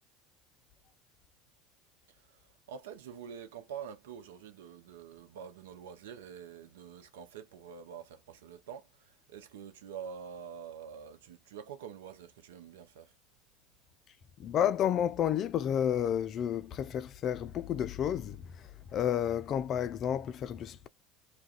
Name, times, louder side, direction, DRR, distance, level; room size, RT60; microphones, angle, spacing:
voice 1, 2.7-8.9 9.3-13.1, right 7 dB, 75° right, 0.5 m, -46 dB
voice 2, 14.4-18.4 18.9-20.9, left 9 dB, 45° left, 0.3 m, -31 dB
2.3 x 2.2 x 2.4 m
hypercardioid pair, 75°, 0 cm